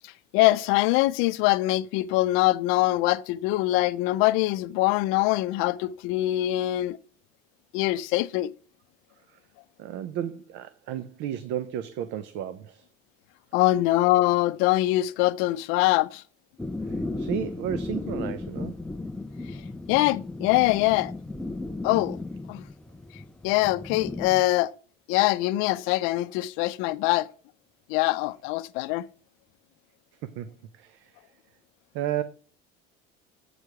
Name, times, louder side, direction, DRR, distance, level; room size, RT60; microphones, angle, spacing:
voice 1, 0.3-7.0 7.7-8.5 13.5-16.2 19.9-21.1 21.8-22.2 22.5-22.6 23.4-24.7 25.1-27.3 27.9-29.1, left 17 dB, 75° left, 0.5 m, -23 dB
voice 2, 9.8-12.9 16.8-18.8 30.2-31.2 31.9-32.2, right 10 dB, 60° right, 0.6 m, -33 dB
sound 1, 16.6-24.4, left 2 dB, 5° left, 0.3 m, -35 dB
8.1 x 4.7 x 4.8 m
cardioid pair, 165°, 21 cm